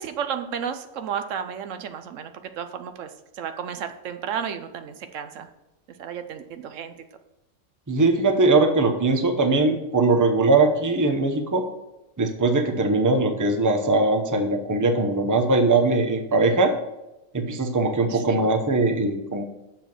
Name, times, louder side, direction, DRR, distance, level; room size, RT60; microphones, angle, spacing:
voice 1, 0.0-5.5 6.0-6.9 18.1-18.5, right 8 dB, 75° right, 8 dB, 1.0 m, -33 dB
voice 2, 7.9-11.7 12.2-16.7 17.3-19.4, right 3 dB, 20° right, 5 dB, 0.7 m, -21 dB
6.9 x 5.9 x 6.0 m, 0.95 s
omnidirectional pair, 1.3 m